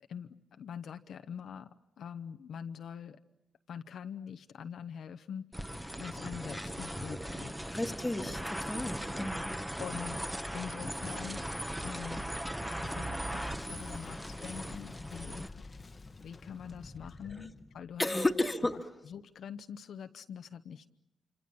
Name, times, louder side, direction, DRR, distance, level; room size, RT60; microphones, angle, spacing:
voice 1, 0.1-3.2 3.7-5.5 6.0-7.5 9.8-10.2 10.5-11.5 11.8-12.4 12.8-15.6 16.2-18.3 19.0-20.9, left 7 dB, 70° left, 8 dB, 0.9 m, -44 dB
sound 1, 5.5-15.5, equal, 5° right, 1.2 m, -38 dB
voice 2, 7.7-9.5 18.0-18.8, left 2 dB, 15° left, 5 dB, 1.8 m, -32 dB
Boom, 13.2-18.8, left 3 dB, 30° left, 1.2 m, -48 dB
27.0 x 26.5 x 7.1 m, 0.85 s
cardioid pair, 95°, 0 cm